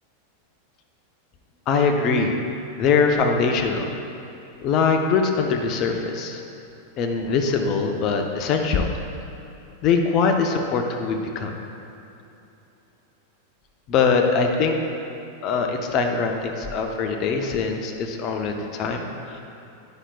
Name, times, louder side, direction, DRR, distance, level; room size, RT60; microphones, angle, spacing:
voice 1, 1.7-2.3 2.8-3.9 4.6-6.4 7.0-8.9 9.8-11.5 13.9-14.8 15.4-19.4, left 5 dB, 35° left, 3 dB, 0.6 m, -22 dB
9.8 x 5.6 x 2.3 m, 2.8 s
figure-of-eight pair, 90°, 0 cm